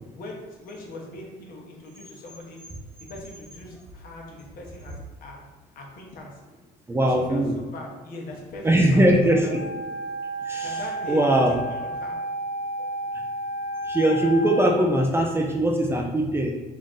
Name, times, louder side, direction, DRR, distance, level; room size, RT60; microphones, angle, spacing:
voice 1, 0.1-2.6 3.1-5.5 5.7-6.4 7.0-9.5 10.6-12.2, left 2 dB, 60° left, -1 dB, 1.0 m, -40 dB
voice 2, 6.9-7.5 8.6-9.6 10.5-10.8 11.1-11.5 13.9-16.5, right 1 dB, 15° right, 1 dB, 0.4 m, -21 dB
Wind instrument woodwind instrument, 9.4-14.7, right 1 dB, 90° left, 0.5 m, -32 dB
3.8 x 2.5 x 3.6 m, 1.2 s
cardioid pair, 110°, 17 cm